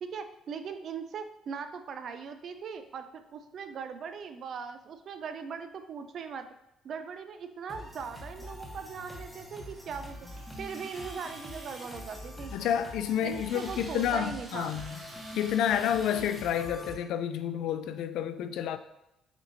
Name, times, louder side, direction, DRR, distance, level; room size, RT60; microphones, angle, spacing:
voice 1, 0.0-6.5 6.8-10.1 10.6-12.5 13.2-14.8, right 6 dB, 55° right, 0.5 m, -40 dB
sound 1, 7.7-16.9, left 1 dB, ahead, 1.1 m, -45 dB
Domestic sounds home sounds, 10.3-16.6, right 1 dB, 30° right, 1.3 m, -50 dB
voice 2, 12.5-15.0 15.4-18.8, left 9 dB, 75° left, 0.3 m, -30 dB
7.0 x 2.8 x 2.7 m
cardioid pair, 85°, 0 cm